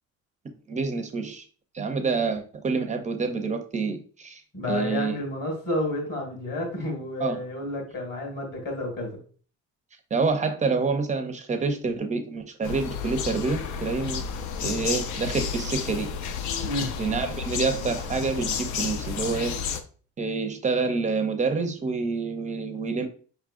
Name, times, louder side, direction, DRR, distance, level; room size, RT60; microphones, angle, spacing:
voice 1, 0.7-1.4 1.7-4.4 4.7-5.1 7.2-7.4 10.1-14.2 14.6-16.1 17.0-19.5 20.2-23.1, right 4 dB, 25° right, 7 dB, 0.5 m, -27 dB
voice 2, 4.5-9.2 16.6-16.9, left 1 dB, 40° left, 1 dB, 1.9 m, -30 dB
sound 1, 12.6-19.8, left 6 dB, 80° left, 0.6 m, -31 dB
5.3 x 3.6 x 2.4 m, 0.41 s
cardioid pair, 145°, 29 cm